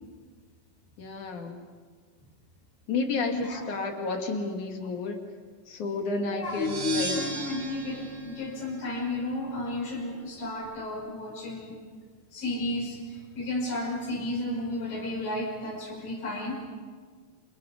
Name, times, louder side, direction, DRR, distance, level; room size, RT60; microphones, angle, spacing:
voice 1, 1.0-1.7 2.9-5.2 5.7-7.2, left 3 dB, 60° left, 3 dB, 3.5 m, -31 dB
voice 2, 3.2-3.7 6.3-11.8 12.3-16.7, left 2 dB, 75° left, 0 dB, 7.1 m, -33 dB
sound 1, 6.4-9.3, right 3 dB, 40° right, 3.2 m, -37 dB
28.5 x 27.5 x 5.2 m, 1.6 s
omnidirectional pair, 4.0 m